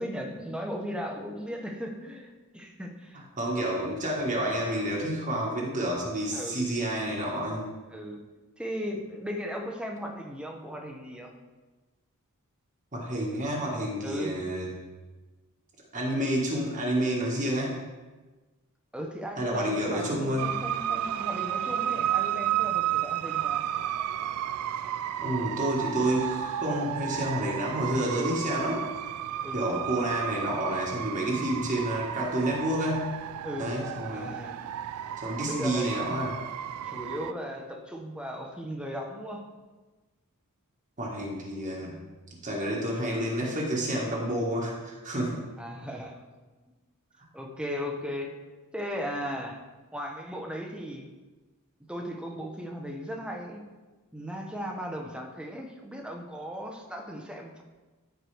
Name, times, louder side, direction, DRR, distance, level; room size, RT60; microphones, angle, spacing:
voice 1, 0.0-3.2 6.3-6.7 7.9-8.2 8.6-11.3 14.0-14.3 18.9-23.6 28.2-28.5 29.4-29.7 31.3-31.6 33.4-33.8 34.1-34.6 35.4-35.9 36.8-39.4 45.6-46.2 47.3-48.3 48.7-49.6 49.9-51.0 51.9-53.6 54.1-57.6, equal, 5° right, 1 dB, 0.9 m, -37 dB
voice 2, 3.4-7.7 12.9-14.7 15.9-17.8 19.4-20.5 25.2-28.8 29.5-33.1 33.6-34.3 35.2-36.4 41.0-42.0 42.4-45.4, right 1 dB, 35° right, -3 dB, 1.5 m, -29 dB
sound 1, 20.4-37.3, right 11 dB, 75° right, 0.3 m, -32 dB
13.5 x 4.7 x 3.4 m, 1.2 s
head